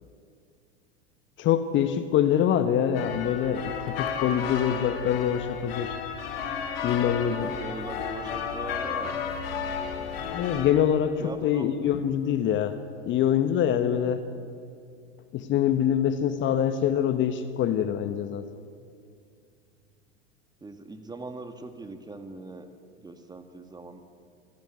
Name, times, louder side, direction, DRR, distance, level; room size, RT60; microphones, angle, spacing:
voice 1, 1.4-5.9 6.8-7.5 10.2-14.2 15.3-18.5, left 9 dB, 35° left, 10 dB, 1.4 m, -25 dB
sound 1, 2.9-10.7, left 7 dB, 65° left, 2.9 m, -33 dB
voice 2, 7.3-9.2 11.2-11.8 20.6-22.7 23.0-24.0, right 2 dB, 15° right, 7 dB, 2.2 m, -40 dB
26.5 x 15.5 x 9.4 m, 2.3 s
figure-of-eight pair, 85°, 32 cm